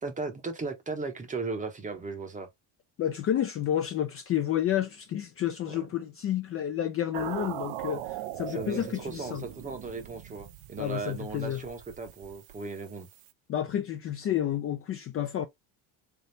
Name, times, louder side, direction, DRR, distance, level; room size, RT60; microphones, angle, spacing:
voice 1, 0.0-2.5 5.6-5.9 8.4-13.1, right 4 dB, 20° right, 0.7 m, -37 dB
voice 2, 3.0-9.4 10.8-11.6 13.5-15.5, left 11 dB, 35° left, 0.4 m, -30 dB
sound 1, 7.1-13.3, right 13 dB, 85° right, 0.6 m, -40 dB
3.9 x 3.4 x 2.6 m
cardioid pair, 160°, 43 cm